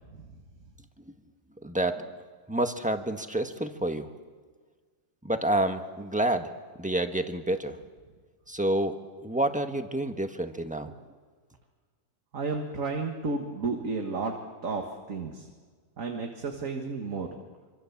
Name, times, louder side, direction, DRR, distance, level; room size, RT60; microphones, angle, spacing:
voice 1, 1.6-2.1 2.5-4.1 5.2-6.5 6.8-7.8 8.5-9.0 9.2-10.9, right 1 dB, 5° right, 6 dB, 1.3 m, -28 dB
voice 2, 12.3-14.3 14.6-15.5 16.0-17.3, right 4 dB, 65° right, 3 dB, 2.2 m, -32 dB
26.0 x 25.5 x 7.3 m, 1.5 s
omnidirectional pair, 1.5 m